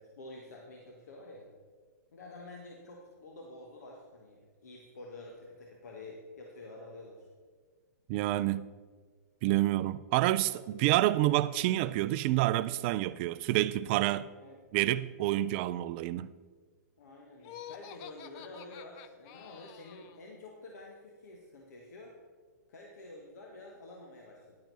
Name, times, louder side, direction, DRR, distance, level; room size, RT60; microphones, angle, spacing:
voice 1, 0.0-1.5 2.1-7.3 14.4-14.6 17.0-22.1 22.7-24.6, left 2 dB, 70° left, 1.6 m, -49 dB
voice 2, 8.1-8.7 9.4-14.3 14.7-16.3, right 15 dB, 40° right, 0.4 m, -28 dB
Laughter, 17.4-20.2, left 10 dB, 40° left, 0.6 m, -49 dB
10.5 x 8.9 x 4.1 m
hypercardioid pair, 125°, 9 cm